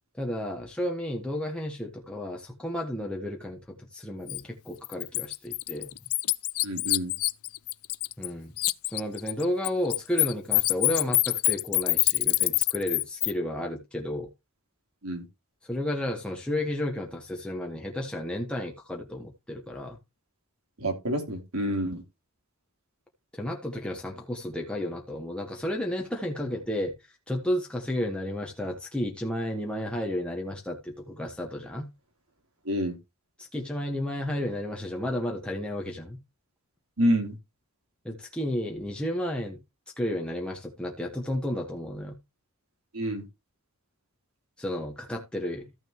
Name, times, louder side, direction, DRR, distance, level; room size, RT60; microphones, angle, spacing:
voice 1, 0.1-5.9 8.2-8.6 8.8-14.3 15.6-20.0 23.3-31.9 33.4-36.2 38.0-39.6 40.0-42.2 44.6-45.7, left 1 dB, 5° left, 1.3 m, -32 dB
Bird, 4.3-4.4 4.8-8.3 8.6-13.3, left 21 dB, 85° left, 0.5 m, -25 dB
voice 2, 6.6-7.1 15.0-15.2 20.8-22.0 32.6-33.0 37.0-37.4 42.9-43.2, equal, 90° right, 3.3 m, -28 dB
14.0 x 6.4 x 2.9 m
head